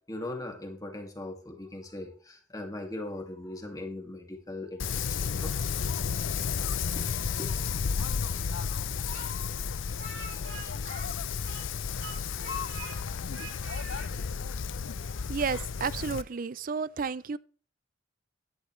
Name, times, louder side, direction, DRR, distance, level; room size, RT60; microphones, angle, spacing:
voice 1, 0.1-5.5 6.9-7.6, left 2 dB, 20° left, 2.2 m, -40 dB
Wind, 4.8-16.2, left 6 dB, 85° left, 0.5 m, -32 dB
Speech, 9.1-11.7 12.0-13.0 13.3-14.1, right 3 dB, 75° right, 5.0 m, -44 dB
voice 2, 15.3-17.4, right 5 dB, 45° right, 0.4 m, -32 dB
12.0 x 11.0 x 3.2 m
head